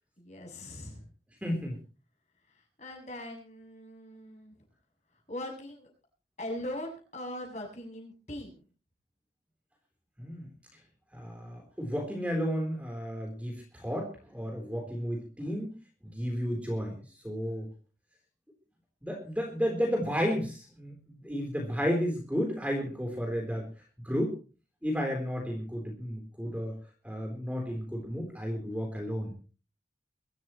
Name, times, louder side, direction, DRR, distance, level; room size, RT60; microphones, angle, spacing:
voice 1, 0.2-1.0 2.5-4.6 5.3-5.9 6.4-8.6, left 1 dB, 40° left, 1 dB, 7.0 m, -41 dB
voice 2, 1.4-1.8 10.2-10.5 11.1-15.7 16.0-17.7 19.0-23.7 24.0-24.3 24.8-26.8 27.0-29.3, equal, 10° right, 1 dB, 3.8 m, -32 dB
23.0 x 14.0 x 3.1 m, 0.36 s
head